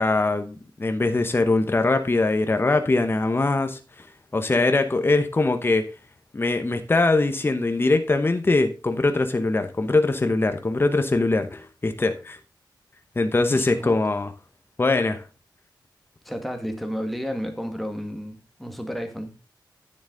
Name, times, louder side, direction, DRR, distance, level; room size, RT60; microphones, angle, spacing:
voice 1, 0.0-4.1 4.3-5.9 6.3-12.4 13.2-14.3 14.8-15.2, left 2 dB, 30° left, 0.9 m, -22 dB
voice 2, 13.5-14.0 16.2-19.3, equal, ahead, 1.8 m, -32 dB
9.9 x 7.1 x 3.8 m
wide cardioid pair, 80°, 8 cm